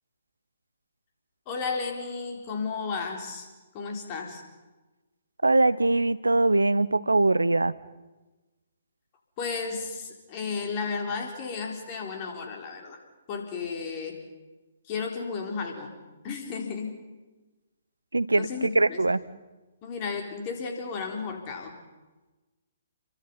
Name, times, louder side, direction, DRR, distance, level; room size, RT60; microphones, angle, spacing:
voice 1, 1.5-3.5 3.7-4.4 9.4-13.0 13.3-14.2 14.9-15.9 16.2-16.9 18.4-19.0 19.8-21.7, left 5 dB, 30° left, 2 dB, 4.4 m, -33 dB
voice 2, 5.4-7.7 18.1-19.2, right 2 dB, 85° right, 18 dB, 0.8 m, -22 dB
28.5 x 24.0 x 5.7 m, 1.2 s
figure-of-eight pair, 130°, 0 cm